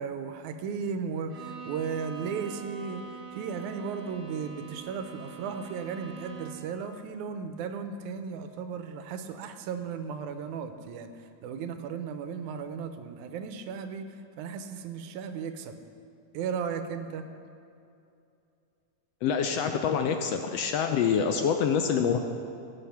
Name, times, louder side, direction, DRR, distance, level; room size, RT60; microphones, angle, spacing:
voice 1, 0.0-3.0 3.3-11.1 11.4-14.1 14.4-15.7 16.3-17.2, right 6 dB, 90° right, 8 dB, 2.2 m, -35 dB
Bowed string instrument, 1.3-6.8, right 6 dB, 35° right, 2.1 m, -44 dB
voice 2, 19.2-22.2, left 7 dB, 80° left, 6 dB, 1.5 m, -26 dB
17.0 x 7.9 x 5.8 m, 2.6 s
omnidirectional pair, 3.3 m